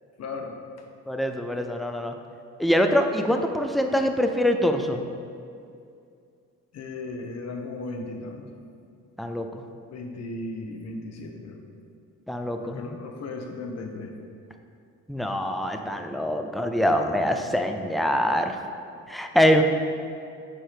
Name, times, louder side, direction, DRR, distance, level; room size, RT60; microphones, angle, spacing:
voice 1, 0.2-0.9 6.7-8.5 9.9-11.6 12.6-14.2 19.1-19.2, left 2 dB, 60° left, 3 dB, 0.8 m, -36 dB
voice 2, 1.1-2.1 2.6-5.0 9.2-9.6 12.3-13.0 15.1-18.6 19.1-19.6, equal, ahead, 5 dB, 0.4 m, -24 dB
4.5 x 4.4 x 5.0 m, 2.4 s
cardioid pair, 90°, 30 cm